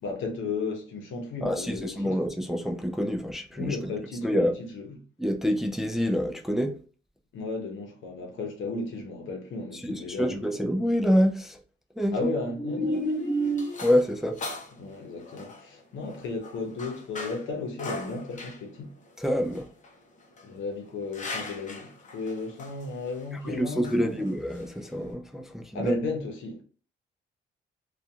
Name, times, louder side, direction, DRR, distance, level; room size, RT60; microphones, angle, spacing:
voice 1, 0.0-2.2 3.5-5.0 7.3-10.7 12.1-13.8 14.8-18.9 20.4-24.3 25.7-26.6, left 3 dB, 75° left, 0.9 m, -34 dB
voice 2, 1.4-3.8 4.2-4.5 5.2-6.7 9.8-11.6 12.0-12.3 12.6-14.4 19.2-19.7 23.4-25.9, equal, ahead, 0.3 m, -27 dB
sound 1, 12.8-25.1, left 3 dB, 40° left, 0.7 m, -42 dB
2.7 x 2.4 x 2.3 m
cardioid pair, 90°, 20 cm